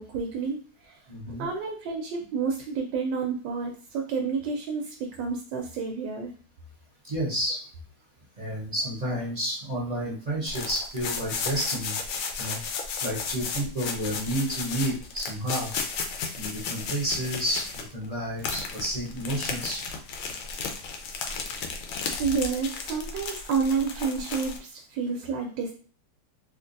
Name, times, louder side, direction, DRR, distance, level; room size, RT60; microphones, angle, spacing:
voice 1, 0.0-1.0 1.3-6.3 22.2-25.7, right 5 dB, 80° right, 2 dB, 1.2 m, -30 dB
voice 2, 1.1-1.5 7.0-7.6 8.4-11.9 12.4-12.6 13.0-15.7 16.3-19.8, equal, 35° right, -7 dB, 0.7 m, -30 dB
sound 1, 10.5-18.1 18.4-24.6, left 5 dB, 80° left, 1.3 m, -34 dB
3.5 x 2.5 x 2.5 m, 0.41 s
omnidirectional pair, 2.0 m